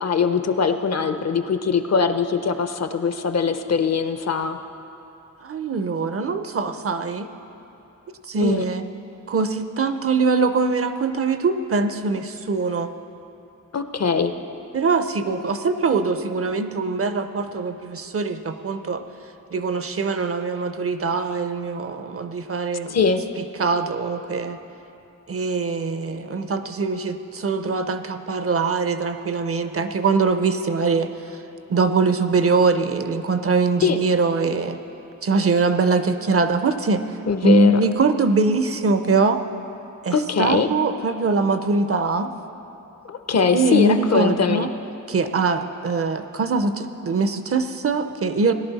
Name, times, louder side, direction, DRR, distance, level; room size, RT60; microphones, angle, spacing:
voice 1, 0.0-4.6 8.4-8.6 13.7-14.3 22.9-23.2 33.8-34.0 37.3-37.8 40.1-40.7 43.0-44.7, left 5 dB, 50° left, 9 dB, 0.6 m, -21 dB
voice 2, 5.4-7.3 8.3-8.8 9.3-12.9 14.7-19.0 19.5-23.0 23.6-24.6 25.3-31.4 31.7-34.8 35.2-37.0 37.4-39.4 40.0-42.3 43.5-44.7 45.1-48.5, right 4 dB, 45° right, 9 dB, 0.5 m, -22 dB
17.5 x 11.0 x 4.0 m, 2.8 s
wide cardioid pair, 150°, 32 cm